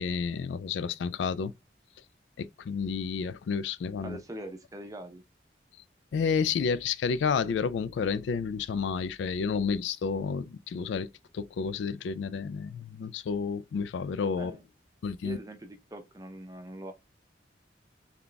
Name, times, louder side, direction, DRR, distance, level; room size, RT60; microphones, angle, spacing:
voice 1, 0.0-1.5 2.4-4.2 6.1-11.1 11.3-14.6 15.0-15.4, left 5 dB, 80° left, 0.3 m, -30 dB
voice 2, 4.0-5.2 14.3-14.6 15.2-16.9, right 1 dB, 20° right, 0.6 m, -42 dB
3.4 x 2.2 x 3.8 m
head